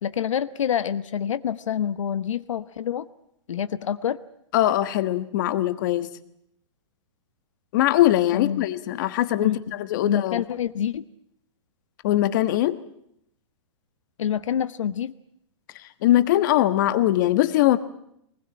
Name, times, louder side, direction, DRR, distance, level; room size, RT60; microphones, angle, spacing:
voice 1, 0.0-3.1 3.5-4.2 8.3-8.7 9.4-9.6 9.9-11.0 14.2-15.1, left 9 dB, 85° left, 14 dB, 1.1 m, -27 dB
voice 2, 4.5-6.1 7.7-10.4 12.0-12.8 16.0-17.8, left 14 dB, 40° left, 12 dB, 1.3 m, -21 dB
23.0 x 20.5 x 8.9 m, 0.74 s
hypercardioid pair, 165°, 16 cm